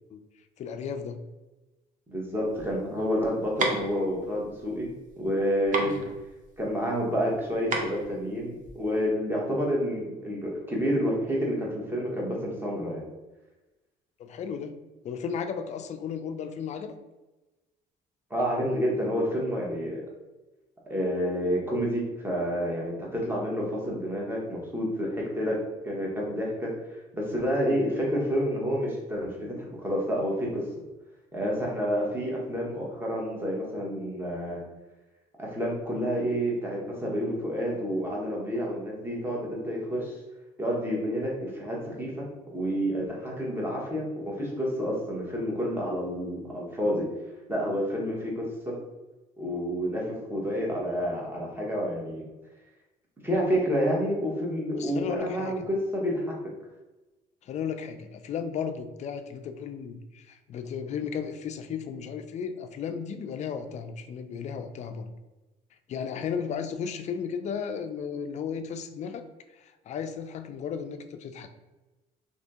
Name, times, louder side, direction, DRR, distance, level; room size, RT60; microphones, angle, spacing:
voice 1, 0.6-1.2 5.8-6.1 14.2-14.8 15.0-17.0 54.8-55.7 57.4-65.1 65.9-69.3 69.5-71.5, left 7 dB, 45° left, 8 dB, 0.4 m, -34 dB
voice 2, 2.1-5.9 6.6-13.0 18.3-20.0 20.9-26.7 27.1-30.6 31.3-34.6 35.4-40.2 40.6-47.1 47.5-48.8 49.4-52.2 53.2-56.4, equal, 15° right, -3 dB, 1.0 m, -29 dB
sound 1, 2.4-9.0, right 3 dB, 50° right, 0.6 m, -34 dB
2.7 x 2.7 x 3.5 m, 1.1 s
cardioid pair, 110°, 17 cm